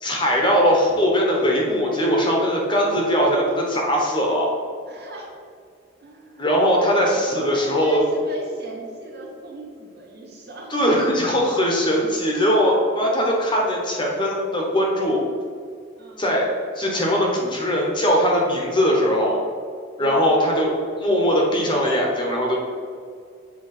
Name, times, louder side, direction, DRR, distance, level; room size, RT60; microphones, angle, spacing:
voice 1, 0.0-4.5 6.4-8.1 10.7-15.2 16.2-16.5 16.7-19.4 20.0-22.6, equal, 25° left, -2 dB, 1.1 m, -20 dB
voice 2, 4.9-5.3 6.0-6.5 7.2-10.8 16.0-16.3 20.0-20.3, right 1 dB, 50° right, -3 dB, 1.7 m, -39 dB
8.0 x 3.2 x 5.9 m, 2.2 s
head